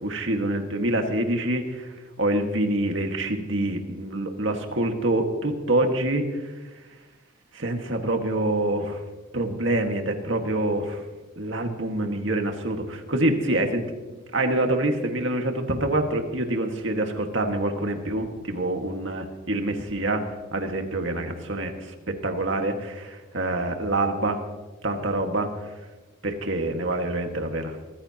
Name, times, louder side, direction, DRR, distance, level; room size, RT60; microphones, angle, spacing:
voice 1, 0.0-1.9 2.2-6.2 7.5-9.0 9.3-11.0 11.4-13.8 14.3-20.2 20.5-21.9 22.2-24.4 24.8-25.5 26.2-27.8, right 1 dB, 65° right, 4 dB, 1.8 m, -26 dB
24.0 x 14.5 x 2.9 m, 1.2 s
head